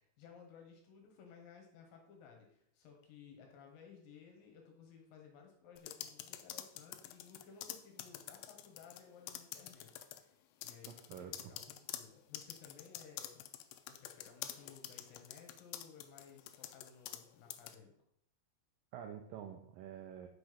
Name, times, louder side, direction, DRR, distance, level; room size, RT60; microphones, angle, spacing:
voice 1, 0.2-13.4 13.8-17.9, left 6 dB, 65° left, 2 dB, 2.7 m, -58 dB
sound 1, 5.8-9.0 9.3-10.2 10.6-17.2 17.5-17.7, left 12 dB, 85° left, 2.6 m, -47 dB
voice 2, 10.9-11.5 18.9-20.3, right 9 dB, 90° right, 4 dB, 2.0 m, -48 dB
6.4 x 5.8 x 5.0 m, 0.69 s
omnidirectional pair, 4.8 m